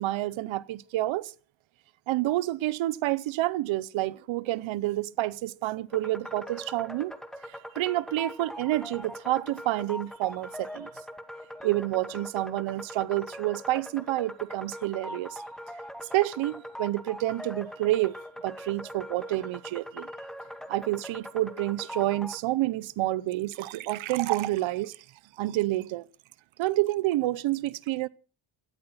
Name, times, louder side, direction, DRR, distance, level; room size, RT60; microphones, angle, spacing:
voice 1, 0.0-1.3 2.1-7.1 7.8-10.9 11.6-15.4 16.1-18.1 18.4-20.1 20.7-25.0 25.4-26.0 26.6-28.1, right 16 dB, 70° right, 0.9 m, -28 dB
sound 1, 5.9-22.4, equal, ahead, 1.1 m, -42 dB
17.0 x 13.0 x 5.7 m
cardioid pair, 130°, 49 cm